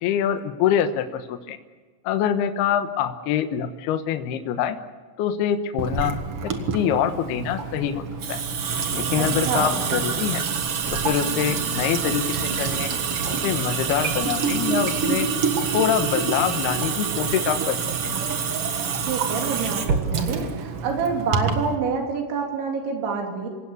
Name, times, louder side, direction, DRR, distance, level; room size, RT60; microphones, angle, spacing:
voice 1, 0.0-1.6 2.0-4.8 5.2-6.2 6.4-8.0 8.3-8.4 8.9-10.4 10.9-12.2 12.6-12.9 13.3-15.3 15.7-17.8 18.0-18.2, left 9 dB, 70° left, 8 dB, 2.8 m, -25 dB
Water tap faucet / Sink (filling or washing) / Drip, 5.8-21.7, right 5 dB, 65° right, 1.4 m, -26 dB
voice 2, 9.2-9.8 19.0-23.5, right 5 dB, 80° right, 2 dB, 5.5 m, -27 dB
26.5 x 17.5 x 8.3 m, 1.4 s
omnidirectional pair, 5.2 m